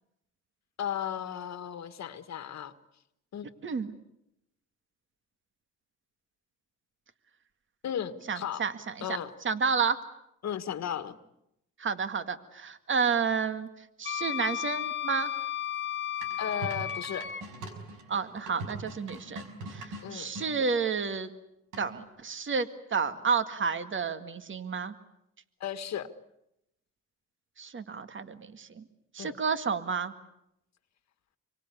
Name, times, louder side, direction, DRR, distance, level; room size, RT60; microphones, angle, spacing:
voice 1, 0.8-2.7 3.3-3.5 7.8-8.7 9.0-9.3 10.4-11.2 16.4-17.3 20.0-20.3 25.6-26.1 29.2-29.3, left 9 dB, 65° left, 10 dB, 1.6 m, -35 dB
voice 2, 3.6-3.9 8.3-9.0 9.4-10.0 11.8-13.7 14.0-15.3 18.1-21.3 21.8-24.9 27.6-28.8 29.1-30.1, right 5 dB, 40° right, 10 dB, 2.0 m, -30 dB
Wind instrument woodwind instrument, 14.0-17.4, left 10 dB, 40° left, 1.4 m, -34 dB
sound 1, 16.2-20.5 21.7-22.1, right 2 dB, 90° right, 5.5 m, -42 dB
26.5 x 24.5 x 8.4 m, 0.82 s
cardioid pair, 90°, 30 cm